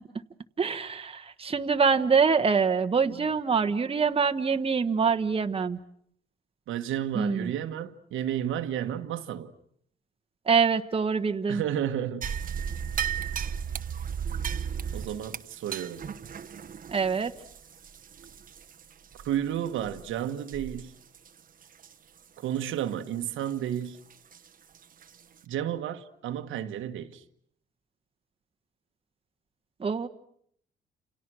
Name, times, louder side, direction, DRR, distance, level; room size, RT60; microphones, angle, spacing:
voice 1, 0.6-5.8 7.1-7.5 10.5-11.6 16.9-17.3 29.8-30.1, right 5 dB, 30° right, 1.2 m, -25 dB
voice 2, 6.7-9.5 11.5-12.3 14.9-16.0 19.2-20.9 22.4-24.0 25.5-27.2, right 10 dB, 85° right, 1.4 m, -32 dB
sound 1, 12.2-18.8 19.1-19.3 19.8-20.0 20.5-20.8 21.1-21.3 21.8-21.9 24.3-24.4 25.0-25.1, right 7 dB, 45° right, 1.1 m, -34 dB
29.5 x 28.5 x 6.3 m
cardioid pair, 90°, 20 cm